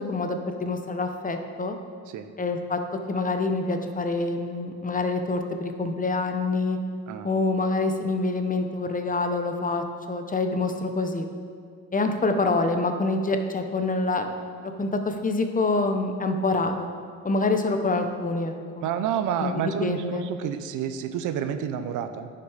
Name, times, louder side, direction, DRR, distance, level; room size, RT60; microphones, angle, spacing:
voice 1, 0.0-1.8 2.4-2.8 3.1-6.8 7.2-11.2 11.9-14.3 14.6-16.9 17.2-18.9 19.4-20.3, left 3 dB, 25° left, 6 dB, 0.9 m, -26 dB
voice 2, 18.8-22.3, right 9 dB, 85° right, 10 dB, 0.7 m, -29 dB
10.0 x 5.9 x 5.0 m, 2.3 s
cardioid pair, 90°, 30 cm